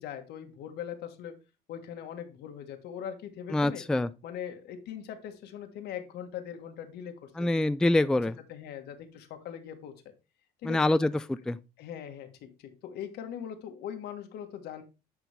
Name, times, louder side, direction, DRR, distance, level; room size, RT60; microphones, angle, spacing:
voice 1, 0.0-1.3 1.7-3.8 4.2-7.7 8.5-9.9 10.6-10.8 11.8-14.8, left 9 dB, 80° left, 1.5 m, -41 dB
voice 2, 3.5-4.1 7.4-8.3 10.6-11.6, left 2 dB, 5° left, 0.3 m, -25 dB
10.5 x 4.2 x 3.4 m
cardioid pair, 110°, 17 cm